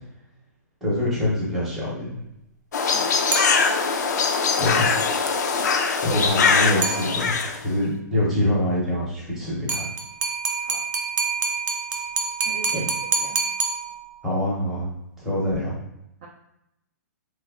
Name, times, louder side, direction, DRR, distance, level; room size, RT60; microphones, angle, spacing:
voice 1, 0.8-2.2 4.6-4.9 6.0-9.9 14.2-14.9 15.2-15.7, left 1 dB, 5° right, -8 dB, 0.7 m, -25 dB
sound 1, 2.7-7.6, left 5 dB, 75° left, 0.5 m, -22 dB
sound 2, 3.3-4.1 6.8-7.6 9.7-14.4, right 4 dB, 80° right, 0.6 m, -27 dB
voice 2, 12.5-12.9 13.2-13.4 16.2-16.3, right 4 dB, 30° right, -4 dB, 0.3 m, -38 dB
3.0 x 2.4 x 3.5 m, 0.83 s
hypercardioid pair, 175°, 10 cm